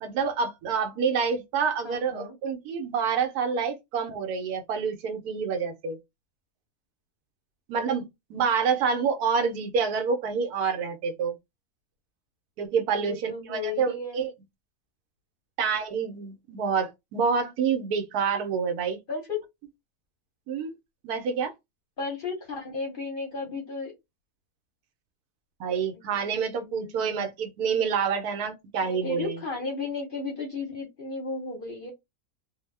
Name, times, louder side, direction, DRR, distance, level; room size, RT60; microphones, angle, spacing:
voice 1, 0.0-6.0 7.7-11.3 12.6-14.3 15.6-19.0 20.5-20.7 21.0-21.5 25.6-29.4, right 6 dB, 80° right, 1.2 m, -27 dB
voice 2, 1.8-2.3 12.9-14.2 19.1-19.4 22.0-23.9 26.1-27.3 28.8-31.9, left 4 dB, 50° left, 0.7 m, -34 dB
2.7 x 2.0 x 3.2 m
omnidirectional pair, 1.6 m